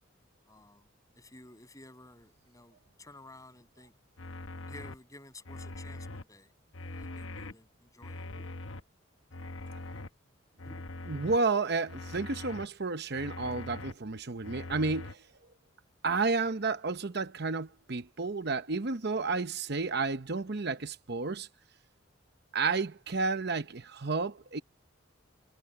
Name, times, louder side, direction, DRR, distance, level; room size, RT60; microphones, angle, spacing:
voice 1, 0.5-0.9 1.2-3.9 4.6-6.5 6.9-8.5 10.6-10.8, left 2 dB, 15° left, 7.0 m, -53 dB
sound 1, 4.2-4.9 5.4-6.2 6.7-7.5 8.0-8.8 9.3-10.1 10.6-11.4 11.9-12.6 13.1-13.9 14.4-15.1, left 2 dB, 75° left, 1.1 m, -42 dB
voice 2, 11.1-15.2 16.0-21.5 22.5-24.6, right 4 dB, 55° right, 0.9 m, -31 dB
head